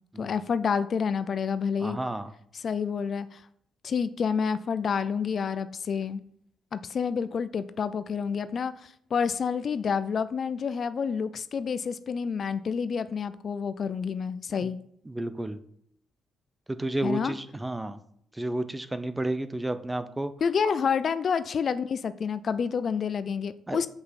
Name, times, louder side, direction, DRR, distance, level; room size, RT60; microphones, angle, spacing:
voice 1, 0.2-2.0 2.5-3.4 3.8-6.2 6.7-14.8 17.0-17.4 20.4-23.9, left 6 dB, 50° left, 14 dB, 0.4 m, -29 dB
voice 2, 1.8-2.3 14.6-14.7 15.1-15.6 16.7-18.0 18.3-20.3 23.7-23.8, right 1 dB, 10° right, 12 dB, 0.6 m, -31 dB
6.0 x 5.4 x 5.9 m, 0.69 s
cardioid pair, 90°, 0 cm